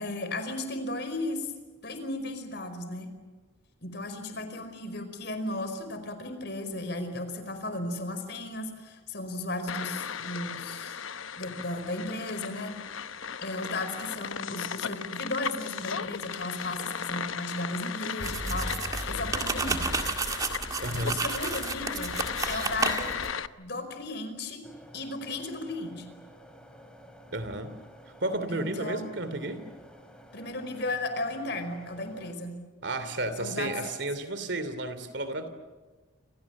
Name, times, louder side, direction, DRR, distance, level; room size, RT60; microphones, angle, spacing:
voice 1, 0.0-1.5 1.8-3.1 3.8-11.0 11.4-12.7 13.4-18.7 19.1-19.9 21.1-22.2 22.5-23.2 23.6-24.7 24.9-26.1 28.5-29.1 30.3-32.6 33.4-33.7, left 2 dB, 55° left, 8 dB, 5.0 m, -35 dB
sound 1, 9.7-23.5, left 6 dB, 80° left, 0.9 m, -36 dB
sound 2, 18.2-23.3, right 3 dB, 15° right, 2.0 m, -31 dB
voice 2, 20.8-21.2 27.3-27.7 28.2-29.6 32.8-35.5, right 2 dB, 60° right, 11 dB, 2.9 m, -32 dB
sound 3, 24.6-32.3, equal, 5° left, 3.3 m, -52 dB
28.5 x 27.5 x 7.3 m, 1.3 s
head